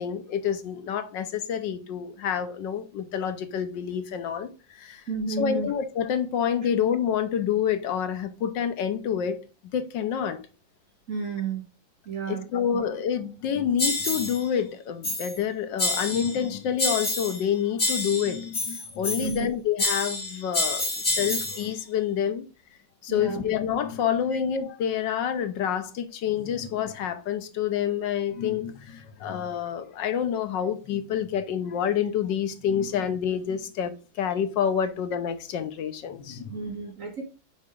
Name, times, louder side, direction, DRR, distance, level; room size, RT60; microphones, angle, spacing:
voice 1, 0.0-5.0 5.4-9.4 9.7-10.4 12.3-22.5 23.0-36.7, left 8 dB, 75° left, 1.5 m, -28 dB
voice 2, 5.1-5.7 11.1-11.6 12.1-12.6 19.2-19.5 23.1-23.5 36.5-37.2, right 4 dB, 50° right, 1.4 m, -31 dB
sound 1, 13.8-14.4 15.0-15.4 15.8-16.4 16.8-17.5 17.8-19.4 19.8-21.7, left 2 dB, 50° left, 3.8 m, -28 dB
6.4 x 4.8 x 3.7 m
omnidirectional pair, 2.0 m